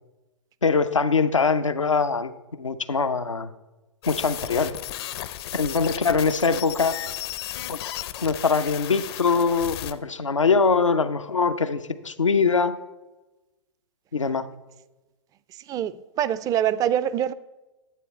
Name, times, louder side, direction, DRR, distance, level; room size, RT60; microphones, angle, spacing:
voice 1, 0.6-3.5 4.1-4.7 5.5-7.0 7.7-7.8 8.2-12.8 14.1-14.5, left 5 dB, 90° left, 0.7 m, -23 dB
sound 1, 4.0-9.9, left 13 dB, 55° left, 0.7 m, -34 dB
voice 2, 15.7-17.3, right 10 dB, 25° right, 0.4 m, -24 dB
11.0 x 8.2 x 4.2 m
figure-of-eight pair, 105°, 16 cm